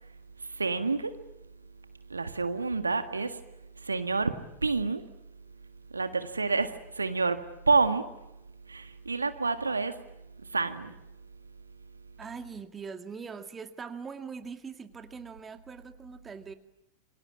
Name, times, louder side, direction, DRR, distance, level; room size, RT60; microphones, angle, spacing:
voice 1, 0.4-1.1 2.1-3.4 3.8-4.3 4.6-5.0 5.9-8.1 8.7-10.0 10.4-10.9, right 4 dB, 80° right, 10 dB, 1.8 m, -28 dB
voice 2, 12.2-16.5, right 5 dB, 15° right, 8 dB, 2.0 m, -42 dB
28.0 x 24.0 x 8.8 m, 0.91 s
figure-of-eight pair, 90°, 0 cm